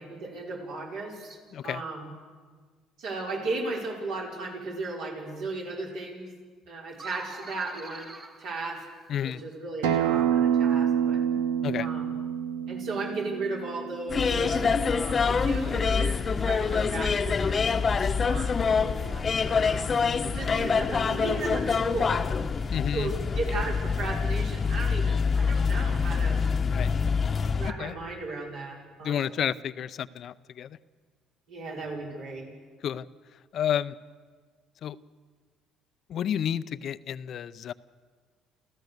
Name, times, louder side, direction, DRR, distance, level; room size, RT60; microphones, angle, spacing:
voice 1, 0.0-2.1 3.0-6.3 6.7-8.8 9.2-11.2 11.8-12.1 12.7-19.9 20.2-22.2 22.9-26.4 27.6-29.2 31.5-32.5, right 3 dB, 75° right, -2 dB, 5.3 m, -36 dB
voice 2, 1.5-1.8 9.1-9.4 11.6-11.9 22.7-23.1 26.6-26.9 27.8-27.9 29.0-30.8 32.8-33.1 33.5-33.9 34.8-35.0 36.1-37.7, left 9 dB, 60° left, 15 dB, 0.6 m, -30 dB
sound 1, 6.9-9.4, right 3 dB, 40° right, 2.5 m, -46 dB
Acoustic guitar, 9.8-15.0, right 9 dB, 90° right, 1.0 m, -27 dB
airport ambient sound, 14.1-27.7, left 5 dB, 40° left, 1.0 m, -26 dB
29.0 x 14.5 x 6.7 m, 1.5 s
supercardioid pair, 70°, 0 cm